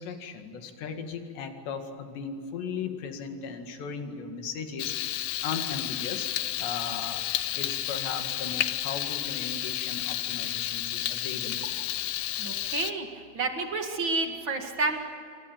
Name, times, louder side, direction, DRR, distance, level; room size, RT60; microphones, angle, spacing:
voice 1, 0.0-6.3 6.6-7.3 7.5-11.7, left 6 dB, 65° left, 5 dB, 4.2 m, -37 dB
Frying (food), 4.8-12.9, left 13 dB, 85° left, 2.1 m, -31 dB
voice 2, 12.4-13.1 13.3-15.0, right 3 dB, 50° right, 4 dB, 1.5 m, -29 dB
28.5 x 26.0 x 7.4 m, 2.5 s
omnidirectional pair, 5.5 m